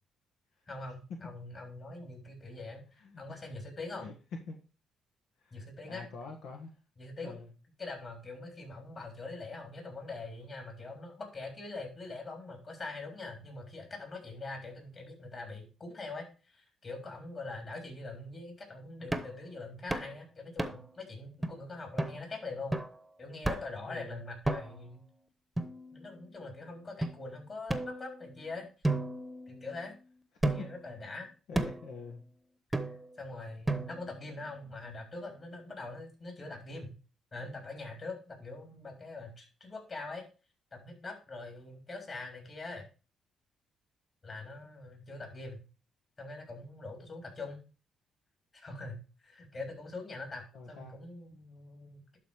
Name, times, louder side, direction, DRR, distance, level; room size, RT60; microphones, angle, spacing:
voice 1, 0.7-2.8 3.2-4.1 5.5-6.1 7.0-7.4 7.8-22.8 23.2-25.0 25.9-28.7 29.5-29.9 30.5-31.3 32.8-36.9 37.3-40.2 40.7-42.9 44.2-45.6 46.2-47.6 48.5-49.0 49.2-52.2, left 3 dB, 35° left, 2 dB, 3.6 m, -43 dB
voice 2, 5.4-6.7 7.2-7.5 17.9-18.0 22.1-22.3 23.9-24.2 30.4-30.5 31.5-32.2 50.5-51.0, left 4 dB, 85° left, 2 dB, 1.5 m, -46 dB
sound 1, 19.1-19.4 19.9-20.1 20.6-21.0 21.4-21.5 22.0-22.2 22.7-23.0 23.4-23.8 24.4-24.9 25.6-26.3 27.0-27.1 27.7-28.4 28.8-29.9 30.4-30.9 31.5-31.9 32.7-33.2 33.7-34.2, right 2 dB, 10° right, 1.0 m, -34 dB
11.5 x 4.1 x 4.8 m, 0.34 s
cardioid pair, 90°, 0 cm